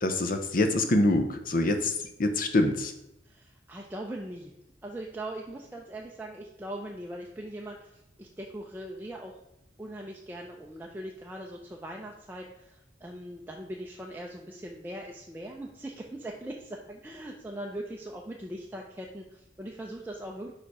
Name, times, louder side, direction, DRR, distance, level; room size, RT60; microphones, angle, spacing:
voice 1, 0.0-2.9, left 2 dB, 45° left, 7 dB, 0.7 m, -25 dB
voice 2, 3.2-4.5 4.8-9.4 9.8-20.5, right 1 dB, 10° right, -1 dB, 0.5 m, -40 dB
5.0 x 5.0 x 4.7 m, 0.87 s
head